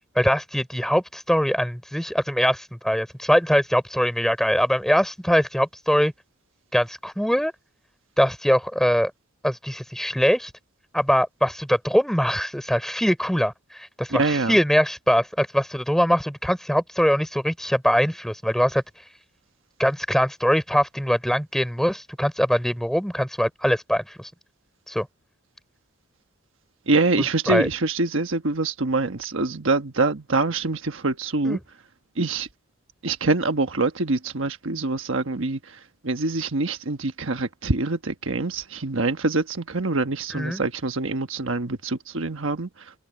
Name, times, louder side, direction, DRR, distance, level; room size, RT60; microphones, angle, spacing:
voice 1, 0.2-6.1 6.7-7.5 8.2-9.1 9.4-10.5 10.9-18.8 19.8-24.3 24.9-25.1 27.5-27.7 31.4-31.6 40.3-40.6, equal, ahead, 3.7 m, -22 dB
voice 2, 14.1-14.6 26.9-31.6 32.2-32.5 33.0-42.9, right 3 dB, 65° right, 1.3 m, -25 dB
head